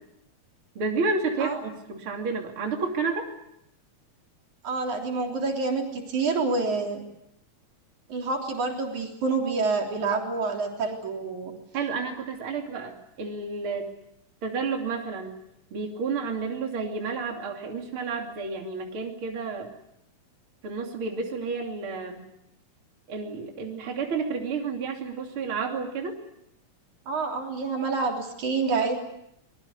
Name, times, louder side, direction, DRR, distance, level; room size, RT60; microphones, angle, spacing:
voice 1, 0.8-3.3 11.7-13.9 14.4-15.4 15.7-19.7 20.6-22.2 23.1-26.2, right 4 dB, 45° right, 1 dB, 3.6 m, -31 dB
voice 2, 4.6-7.0 8.1-11.5 27.1-29.0, right 4 dB, 75° right, 1 dB, 5.0 m, -27 dB
24.5 x 21.5 x 8.3 m, 0.79 s
omnidirectional pair, 3.4 m